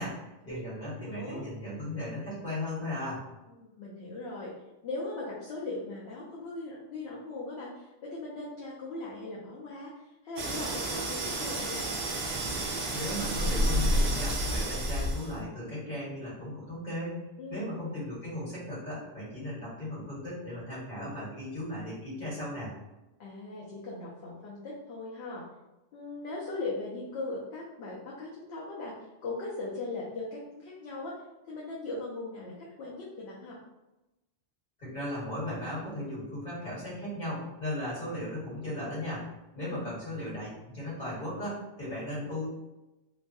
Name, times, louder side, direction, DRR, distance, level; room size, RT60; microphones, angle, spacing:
voice 1, 0.0-3.2 12.9-17.2 17.5-22.7 34.8-42.5, left 1 dB, 40° left, -9 dB, 1.5 m, -36 dB
voice 2, 1.1-1.4 3.5-4.5 4.8-9.9 10.2-11.8 17.4-17.7 23.2-25.4 25.9-31.1 31.5-33.6 39.6-39.9, left 2 dB, 70° left, -5 dB, 0.8 m, -39 dB
sound 1, 10.4-15.4, right 1 dB, 80° right, 1.0 m, -30 dB
3.0 x 2.2 x 2.6 m, 1.0 s
omnidirectional pair, 1.2 m